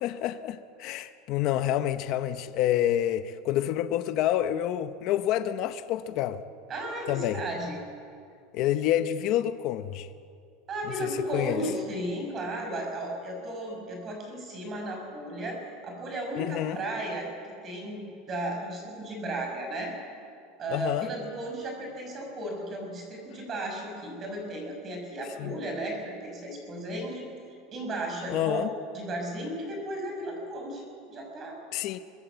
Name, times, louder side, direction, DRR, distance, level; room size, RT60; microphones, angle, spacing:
voice 1, 0.0-6.4 7.1-7.4 8.5-10.1 11.0-11.6 16.4-16.8 20.7-21.1 25.4-25.5 28.3-28.7 31.7-32.0, left 12 dB, 40° left, 0.8 m, -28 dB
voice 2, 6.7-7.8 10.7-17.3 17.6-19.9 20.6-27.2 27.7-28.6 28.9-31.6, right 1 dB, 25° right, 5.6 m, -35 dB
23.0 x 21.0 x 8.1 m
supercardioid pair, 175°, 0 cm